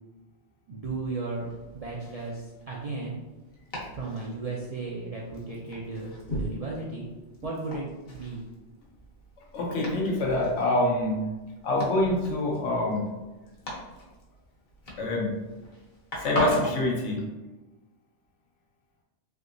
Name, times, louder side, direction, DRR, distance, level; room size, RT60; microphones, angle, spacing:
voice 1, 0.7-3.2 3.9-7.1 7.4-8.4, right 3 dB, 60° right, -5 dB, 0.4 m, -35 dB
Domestic sounds home sounds, 1.3-16.8, equal, 60° left, 1.1 m, -38 dB
voice 2, 9.5-11.2 11.6-13.1 15.0-15.3 16.2-17.2, left 1 dB, 85° left, -1 dB, 1.1 m, -26 dB
3.4 x 2.8 x 2.5 m, 1.1 s
omnidirectional pair, 1.2 m